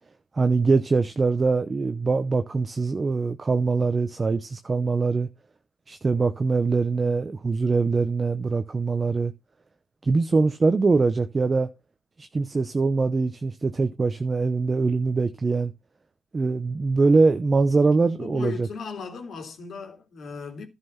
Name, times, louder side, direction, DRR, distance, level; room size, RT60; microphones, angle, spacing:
voice 1, 0.3-5.3 5.9-9.3 10.0-11.7 12.2-15.7 16.3-18.7, right 4 dB, 30° right, 0.8 m, -23 dB
voice 2, 17.9-20.7, left 5 dB, 60° left, 3.2 m, -37 dB
11.5 x 5.7 x 5.7 m
cardioid pair, 90°, 0 cm